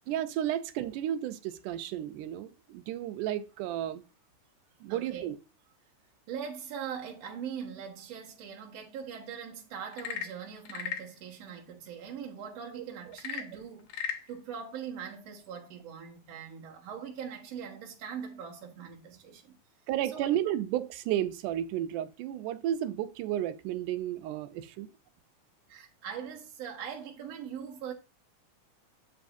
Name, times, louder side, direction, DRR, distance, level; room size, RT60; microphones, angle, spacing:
voice 1, 0.1-4.0 4.8-5.4 12.8-12.9 19.9-24.5, right 11 dB, 90° right, 2.2 m, -32 dB
voice 2, 4.9-5.3 6.3-19.6 20.0-20.3 25.7-27.9, right 7 dB, 60° right, 2.4 m, -41 dB
Frog / Percussion / Wood, 9.8-11.1 13.1-14.3, left 9 dB, 70° left, 1.6 m, -37 dB
12.0 x 4.1 x 2.6 m
omnidirectional pair, 3.6 m